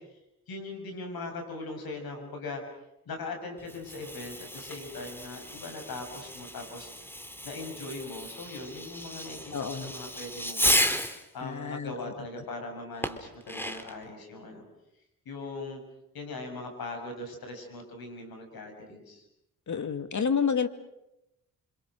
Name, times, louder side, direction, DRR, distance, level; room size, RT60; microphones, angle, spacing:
voice 1, 0.5-2.6 3.1-7.2 7.4-10.9 11.3-14.6 15.3-15.8 16.1-19.2, left 2 dB, 70° left, 4 dB, 7.1 m, -40 dB
Fireworks, 3.6-11.3 13.0-14.0, equal, 5° left, 3.0 m, -33 dB
voice 2, 9.5-9.9 11.4-12.3 19.7-20.7, left 6 dB, 50° left, 9 dB, 2.5 m, -30 dB
30.0 x 26.0 x 6.3 m, 0.87 s
supercardioid pair, 45°, 37 cm